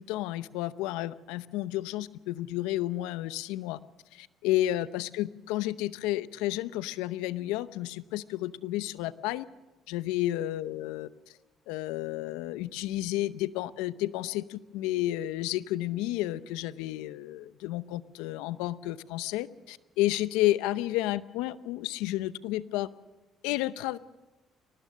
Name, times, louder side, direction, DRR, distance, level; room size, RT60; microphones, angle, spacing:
voice 1, 0.0-3.8 4.1-9.5 9.9-11.1 11.7-22.9 23.4-24.0, left 15 dB, 85° left, 16 dB, 0.7 m, -31 dB
23.0 x 19.0 x 6.3 m, 1.2 s
supercardioid pair, 70°, 0 cm